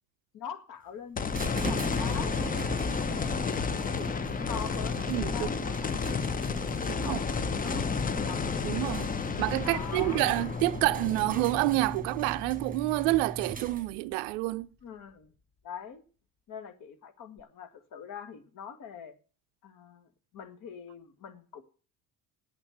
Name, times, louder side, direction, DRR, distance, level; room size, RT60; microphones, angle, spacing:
voice 1, 0.3-2.4 3.7-4.1 4.5-6.1 6.8-7.2 7.5-8.4 9.6-10.4 14.8-15.3 15.6-16.0 16.5-19.1 19.6-21.6, left 7 dB, 45° left, 1.9 m, -43 dB
sound 1, 1.2-13.5 13.9-14.0 17.4-17.5, left 5 dB, 20° left, 0.7 m, -32 dB
sound 2, 1.3-14.1, right 3 dB, 20° right, 1.4 m, -40 dB
voice 2, 5.1-5.5 7.0-7.2 8.6-9.1 9.4-14.7, right 20 dB, 60° right, 0.6 m, -28 dB
9.2 x 8.5 x 7.8 m
figure-of-eight pair, 65°, 44 cm